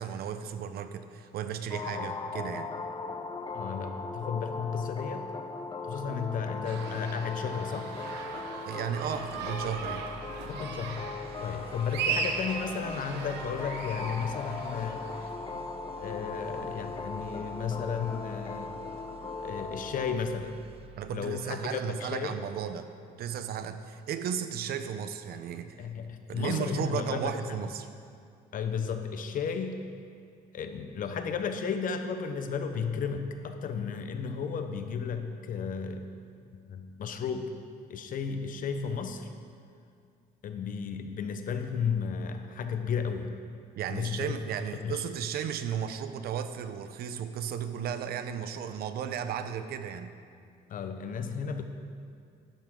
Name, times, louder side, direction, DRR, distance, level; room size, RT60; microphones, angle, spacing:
voice 1, 0.0-2.7 8.7-10.1 21.0-22.9 23.2-25.7 26.3-27.9 43.8-50.1, right 8 dB, 65° right, 10 dB, 0.7 m, -34 dB
sound 1, 1.7-20.1, left 4 dB, 30° left, 0.8 m, -39 dB
voice 2, 3.5-5.3 5.8-7.9 10.5-11.1 11.4-15.0 16.0-18.8 19.4-20.5 21.1-22.4 25.8-27.6 28.5-29.8 30.5-36.1 36.5-37.5 37.9-39.3 40.4-43.3 43.9-44.3 44.7-45.0 50.7-51.6, left 6 dB, 55° left, 7 dB, 0.9 m, -33 dB
sound 2, 6.6-15.3, right 6 dB, 85° right, 1.1 m, -38 dB
sound 3, 8.9-22.0, right 3 dB, 35° right, 0.7 m, -51 dB
12.0 x 11.0 x 3.8 m, 2.3 s
cardioid pair, 110°, 17 cm